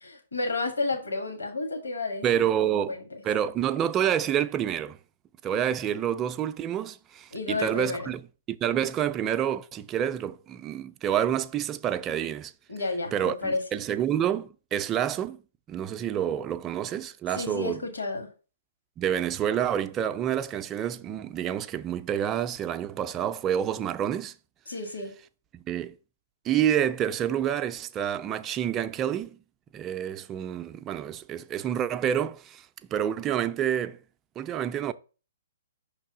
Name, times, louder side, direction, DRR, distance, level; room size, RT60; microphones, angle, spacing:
voice 1, 0.0-3.0 7.3-8.1 12.7-13.6 17.3-18.3 24.7-25.1, left 3 dB, 75° left, 1.5 m, -31 dB
voice 2, 2.2-3.0 3.2-5.0 5.4-8.2 8.5-12.5 13.1-15.4 15.7-17.8 19.0-24.3 25.5-25.9 26.4-29.4 29.7-32.7 32.9-34.0 34.4-34.9, right 10 dB, 20° right, 0.4 m, -28 dB
5.8 x 3.4 x 5.8 m
figure-of-eight pair, 125°, 0 cm